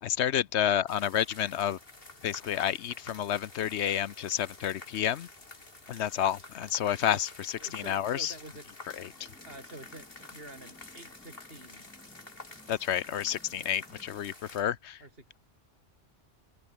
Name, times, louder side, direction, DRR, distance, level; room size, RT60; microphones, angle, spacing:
voice 1, 0.0-1.8 2.2-5.3 5.9-8.3 8.9-9.3 12.7-15.0, left 10 dB, 80° left, 1.0 m, -30 dB
sound 1, 0.9-14.6, left 2 dB, 55° left, 3.4 m, -50 dB
voice 2, 7.6-8.7 9.4-11.9 15.0-15.3, right 1 dB, 60° right, 5.6 m, -48 dB
sound 2, 8.9-14.2, equal, 5° left, 4.4 m, -59 dB
omnidirectional pair, 1.1 m